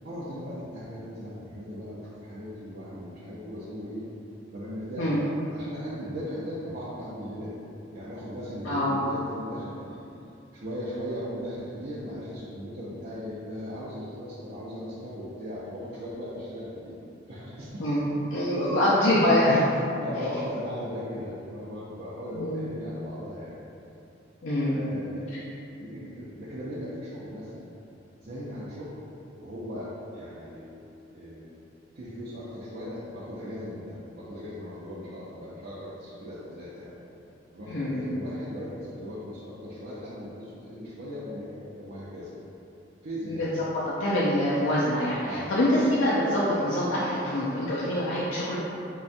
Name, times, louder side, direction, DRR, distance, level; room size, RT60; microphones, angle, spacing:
voice 1, 0.0-4.0 4.5-7.6 7.9-10.0 10.5-16.9 17.3-17.8 18.5-18.9 19.7-23.5 24.6-25.4 25.8-27.6 28.2-28.9 29.4-30.8 31.1-31.5 31.9-36.9 37.5-42.3 43.0-43.5 45.3-45.5, equal, 55° right, -10 dB, 0.6 m, -38 dB
voice 2, 8.6-9.1 17.8-19.6 22.3-22.6 24.4-24.8 37.7-38.1 43.3-43.5 43.7-48.6, left 1 dB, 85° left, -8 dB, 0.5 m, -25 dB
5.3 x 2.3 x 2.5 m, 2.8 s
head